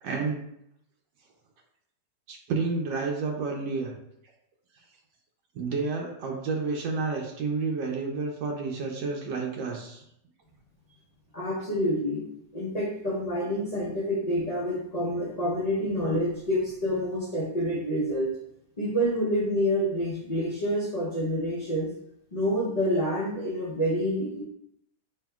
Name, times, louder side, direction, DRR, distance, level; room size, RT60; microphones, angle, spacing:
voice 1, 0.0-0.4 2.3-3.9 5.5-10.0 13.8-13.9, right 4 dB, 90° right, 1 dB, 1.3 m, -30 dB
voice 2, 11.3-12.2 12.5-18.3 18.8-21.9 22.3-24.4, equal, 40° left, -7 dB, 0.6 m, -27 dB
5.4 x 2.8 x 2.3 m, 0.75 s
omnidirectional pair, 1.9 m